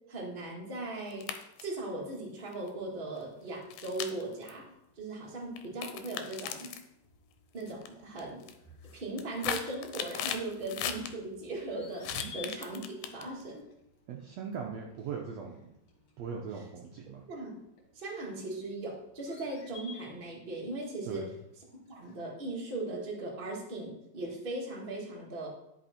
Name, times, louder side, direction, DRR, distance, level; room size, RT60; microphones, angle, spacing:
voice 1, 0.1-1.3 1.6-4.6 5.0-6.7 7.5-8.4 8.9-13.6 17.3-17.5 17.9-21.3 21.7-25.5, right 2 dB, 30° right, -3 dB, 1.0 m, -38 dB
sound 1, 1.1-1.8 2.5-2.7 3.7-4.5 5.6-6.8 7.6-7.9 8.2-8.5 9.0-11.1 12.0-13.4, left 9 dB, 85° left, 2.3 m, -37 dB
sound 2, 3.8-22.2, left 5 dB, 50° left, 2.6 m, -57 dB
voice 2, 14.1-15.7 16.2-17.2 21.1-21.3, right 6 dB, 90° right, 0 dB, 1.4 m, -40 dB
11.0 x 5.2 x 4.3 m, 0.85 s
omnidirectional pair, 4.0 m